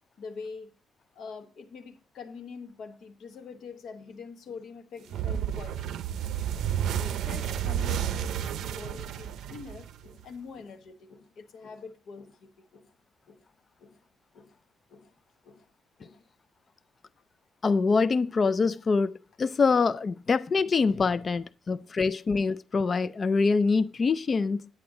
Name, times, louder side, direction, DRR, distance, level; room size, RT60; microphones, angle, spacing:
voice 1, 0.2-0.7 1.1-6.0 6.8-12.9 13.3-13.4 13.8-14.0 14.3-14.6 14.9-15.1 15.4-15.7 16.0-16.2 21.7-21.9 22.2-22.4, left 5 dB, 55° left, 1.1 m, -45 dB
sound 1, 5.1-10.2, right 10 dB, 70° right, 0.6 m, -31 dB
voice 2, 17.6-24.7, left 4 dB, 30° left, 0.3 m, -25 dB
8.7 x 8.6 x 3.7 m
cardioid pair, 160°, 0 cm